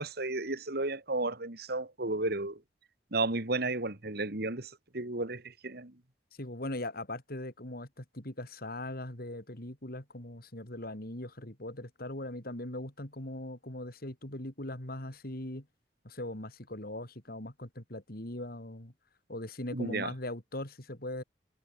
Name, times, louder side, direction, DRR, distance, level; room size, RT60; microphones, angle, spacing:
voice 1, 0.0-2.6 3.1-5.9 19.7-20.1, right 2 dB, 60° right, 2.4 m, -33 dB
voice 2, 6.4-15.7 16.0-18.9 19.3-21.2, left 1 dB, 55° left, 3.8 m, -40 dB
head